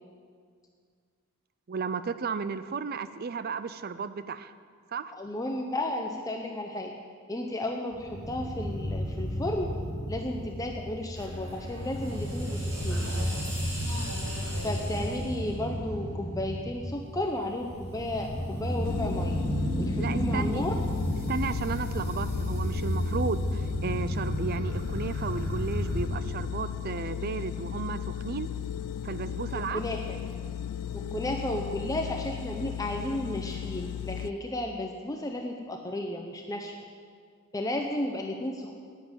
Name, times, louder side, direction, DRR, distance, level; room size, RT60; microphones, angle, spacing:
voice 1, 1.7-4.5 4.9-5.1 20.0-20.6 21.3-28.5 29.0-29.8, right 5 dB, 45° right, 14 dB, 0.4 m, -34 dB
voice 2, 5.1-6.9 7.3-9.7 10.1-13.0 14.6-19.4 19.8-20.7 29.5-30.2 30.9-36.7 37.5-38.7, left 1 dB, 15° left, 2 dB, 0.7 m, -33 dB
sound 1, 7.9-26.1, equal, 15° right, 2.6 m, -32 dB
sound 2, 11.1-16.3, right 1 dB, 65° right, 2.4 m, -43 dB
sound 3, 18.8-34.3, left 9 dB, 85° left, 0.4 m, -35 dB
10.0 x 9.5 x 8.9 m, 2.1 s
head